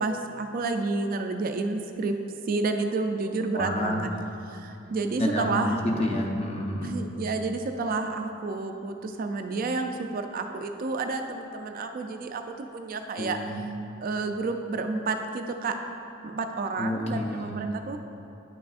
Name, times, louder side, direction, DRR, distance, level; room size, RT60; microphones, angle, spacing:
voice 1, 0.0-2.2 2.5-4.1 4.5-5.7 6.8-13.4 14.0-15.8 16.2-18.0, right 3 dB, 45° right, 5 dB, 0.3 m, -30 dB
voice 2, 3.5-4.1 5.2-6.9 13.2-13.6 16.8-17.6, left 1 dB, 30° left, 1 dB, 0.6 m, -29 dB
9.4 x 6.0 x 2.4 m, 2.8 s
head